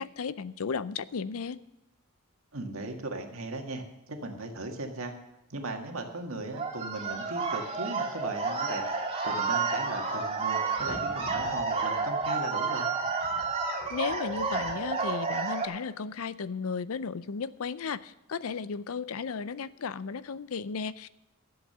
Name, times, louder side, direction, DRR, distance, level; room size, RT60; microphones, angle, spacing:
voice 1, 0.0-1.6 13.9-21.1, left 5 dB, 70° left, 16 dB, 0.5 m, -34 dB
voice 2, 2.5-5.1 5.5-12.9, right 2 dB, 65° right, 3 dB, 1.9 m, -37 dB
sound 1, 6.5-15.7, right 4 dB, 30° right, 2.0 m, -30 dB
12.5 x 7.9 x 6.7 m, 0.92 s
head